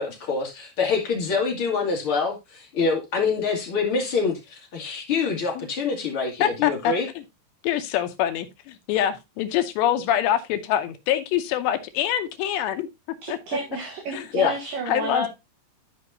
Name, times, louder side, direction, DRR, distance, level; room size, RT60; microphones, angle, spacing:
voice 1, 0.0-7.1 14.3-14.5, left 5 dB, 40° left, 2.2 m, -25 dB
voice 2, 6.4-6.9 7.6-12.9 13.3-13.4 14.1-14.5 14.9-15.3, left 11 dB, 80° left, 2.9 m, -25 dB
voice 3, 13.2-15.3, right 2 dB, 65° right, 2.5 m, -31 dB
12.5 x 5.3 x 2.7 m
omnidirectional pair, 5.1 m